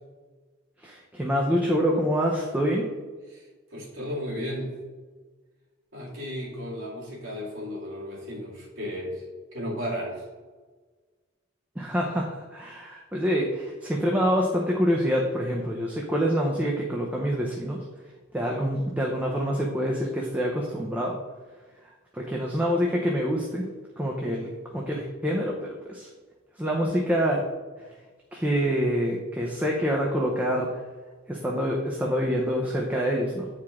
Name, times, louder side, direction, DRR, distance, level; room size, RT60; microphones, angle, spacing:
voice 1, 0.8-2.9 11.8-17.8 18.3-21.2 22.1-23.6 24.0-26.1 26.6-27.5 28.3-30.7 31.3-33.5, equal, 5° right, -2 dB, 0.7 m, -26 dB
voice 2, 3.7-4.8 5.9-9.2 9.5-10.2, equal, 65° right, -4 dB, 2.2 m, -34 dB
9.0 x 4.9 x 3.6 m, 1.4 s
head